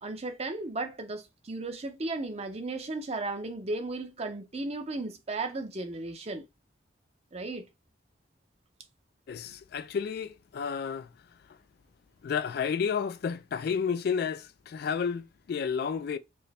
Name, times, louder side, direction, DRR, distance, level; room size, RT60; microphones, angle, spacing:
voice 1, 0.0-6.4 7.3-7.7, right 2 dB, 35° right, 0.7 m, -35 dB
voice 2, 9.3-11.1 12.2-16.2, left 6 dB, 55° left, 0.3 m, -31 dB
4.3 x 2.1 x 3.4 m
head